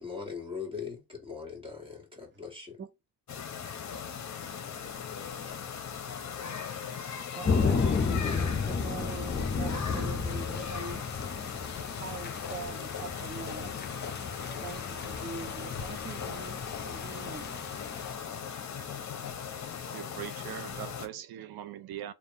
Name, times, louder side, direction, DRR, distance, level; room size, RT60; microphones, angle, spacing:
voice 1, 0.0-2.8, left 6 dB, 15° right, 1.9 m, -40 dB
sound 1, 3.3-21.1, left 7 dB, 50° left, 0.8 m, -39 dB
voice 2, 7.3-11.1 12.0-14.0 14.6-17.6, right 5 dB, 30° right, 0.5 m, -43 dB
sound 2, 7.4-18.1, left 5 dB, 30° left, 0.5 m, -33 dB
voice 3, 19.9-22.1, right 11 dB, 80° right, 0.5 m, -41 dB
3.5 x 2.5 x 4.4 m
cardioid pair, 110°, 36 cm